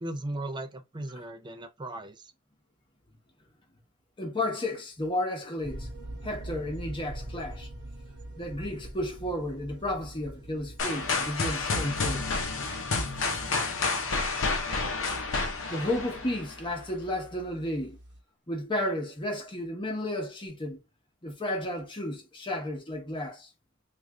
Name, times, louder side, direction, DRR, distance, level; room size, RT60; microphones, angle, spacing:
voice 1, 0.0-2.3, right 1 dB, 20° right, 0.4 m, -37 dB
voice 2, 4.2-5.9 6.2-7.7 8.4-12.3 15.7-18.0 18.5-20.8 21.2-23.5, left 1 dB, 20° left, 0.9 m, -33 dB
sound 1, 5.6-18.2, right 1 dB, 50° right, 1.0 m, -45 dB
sound 2, 10.8-16.7, left 3 dB, 60° left, 0.7 m, -30 dB
3.2 x 2.5 x 3.6 m
head